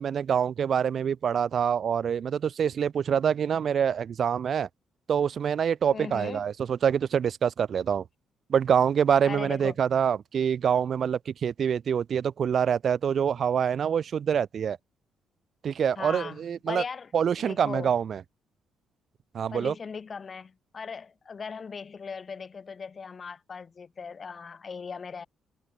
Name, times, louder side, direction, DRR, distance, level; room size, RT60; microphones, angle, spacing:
voice 1, 0.0-4.7 5.1-8.0 8.5-14.8 15.6-16.8 17.1-18.2 19.3-19.7, right 8 dB, 55° right, 0.6 m, -25 dB
voice 2, 5.9-6.4 9.2-9.7 16.0-16.4 16.7-17.1 17.4-17.9 19.5-25.3, left 5 dB, 40° left, 7.6 m, -38 dB
cardioid pair, 90°, 0 cm